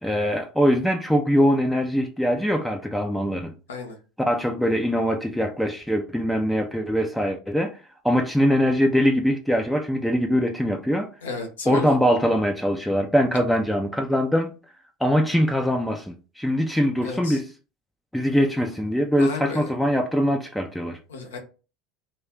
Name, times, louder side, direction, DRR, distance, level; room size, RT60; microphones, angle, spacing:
voice 1, 0.0-3.6 4.2-7.8 8.0-11.1 11.7-14.5 15.0-17.5 18.1-21.0, equal, ahead, 0.4 m, -22 dB
voice 2, 11.2-11.9 17.0-17.4 19.2-19.6 21.1-21.4, left 3 dB, 80° left, 0.8 m, -33 dB
2.3 x 2.2 x 3.5 m
hypercardioid pair, 75°, 0 cm